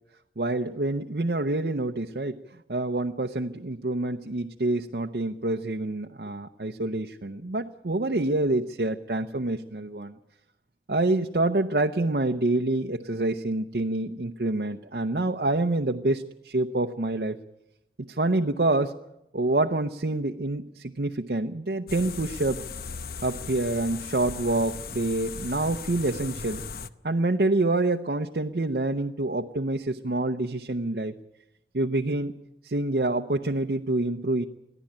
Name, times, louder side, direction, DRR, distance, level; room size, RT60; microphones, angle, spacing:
voice 1, 0.4-2.4 2.7-10.1 10.9-17.4 18.1-18.9 19.3-22.6 23.2-26.6 27.0-31.1 31.7-32.3 32.6-34.5, right 2 dB, 60° right, 4 dB, 0.7 m, -27 dB
sound 1, 21.9-26.9, left 5 dB, 55° left, 0.8 m, -37 dB
22.0 x 14.5 x 8.8 m, 0.86 s
head